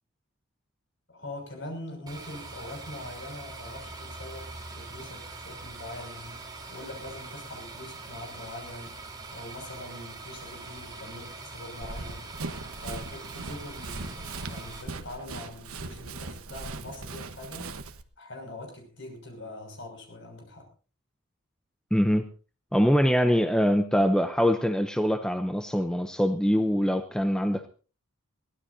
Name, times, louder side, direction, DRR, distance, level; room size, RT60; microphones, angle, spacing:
voice 1, 1.1-9.1 9.3-12.3 12.8-17.8 18.2-20.6, left 1 dB, 55° left, 6.3 m, -43 dB
sound 1, 2.1-14.8, right 3 dB, 20° right, 3.7 m, -43 dB
Run, 11.8-18.0, right 3 dB, 80° right, 1.2 m, -39 dB
voice 2, 21.9-22.3 22.7-27.7, equal, 5° left, 0.7 m, -23 dB
22.5 x 16.5 x 2.7 m
head